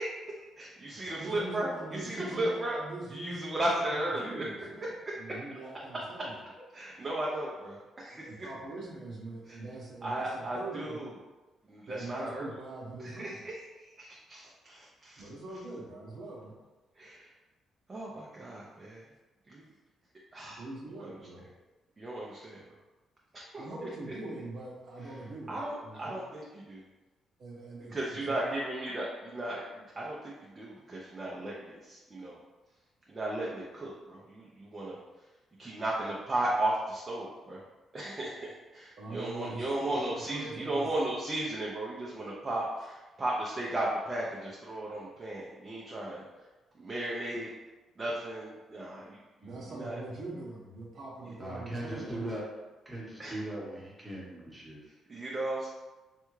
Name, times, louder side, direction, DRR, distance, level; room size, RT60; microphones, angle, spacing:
voice 1, 0.0-2.8 3.1-4.4 5.3-5.4 6.7-8.5 9.5-9.6 10.0-11.1 11.7-12.5 13.0-15.3 17.0-17.3 17.9-19.0 19.5-19.7 20.3-20.6 20.9-21.4 22.0-22.6 23.3-23.9 25.0-25.1 25.5-26.8 27.8-32.4 33.1-35.0 35.6-37.6 37.9-46.3 46.7-47.5 48.0-50.0 51.3-51.4 53.2-53.4 55.1-55.7, right 1 dB, 25° right, -5 dB, 0.6 m, -35 dB
voice 2, 0.9-6.4 8.2-11.1 11.9-13.4 15.2-16.6 20.6-21.4 23.6-26.2 27.4-28.6 39.0-41.2 49.4-52.2, right 2 dB, 65° right, -4 dB, 0.8 m, -43 dB
voice 3, 51.4-52.5 52.8-54.8, right 1 dB, 10° right, -6 dB, 1.1 m, -39 dB
3.3 x 2.3 x 3.1 m, 1.2 s
cardioid pair, 90°, 0 cm